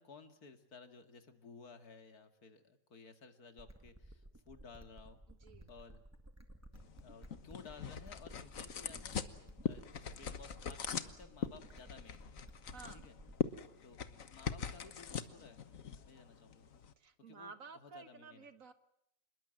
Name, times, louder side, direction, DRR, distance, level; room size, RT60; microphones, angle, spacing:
voice 1, 0.0-5.2 5.7-6.0 7.0-9.4 9.6-12.3 12.9-13.2 13.8-14.0 14.3-15.6 16.0-16.7 17.3-17.5 17.8-18.5, left 5 dB, 85° left, 8 dB, 2.6 m, -56 dB
sound 1, 3.6-13.6, right 1 dB, 10° right, 1.8 m, -56 dB
voice 2, 5.3-5.7 12.7-13.0 17.0-18.7, right 5 dB, 65° right, 11 dB, 1.9 m, -53 dB
sound 2, 6.7-16.9, left 7 dB, 65° left, 1.6 m, -43 dB
27.0 x 21.5 x 7.7 m, 0.74 s
omnidirectional pair, 1.6 m